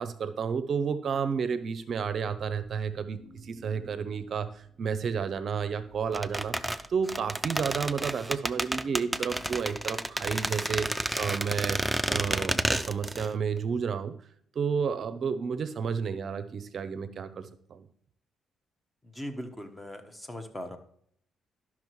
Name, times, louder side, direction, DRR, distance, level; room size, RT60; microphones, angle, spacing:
voice 1, 0.0-6.6 6.9-11.8 12.1-14.1 14.6-17.9, right 6 dB, 55° right, 12 dB, 0.5 m, -31 dB
sound 1, 1.8-10.9, left 1 dB, 70° left, 1.6 m, -56 dB
sound 2, 6.1-13.3 13.6-13.7, right 1 dB, 5° right, 0.4 m, -30 dB
voice 2, 19.0-20.8, equal, 15° left, 7 dB, 1.1 m, -39 dB
12.0 x 5.8 x 3.1 m, 0.65 s
cardioid pair, 90°, 0 cm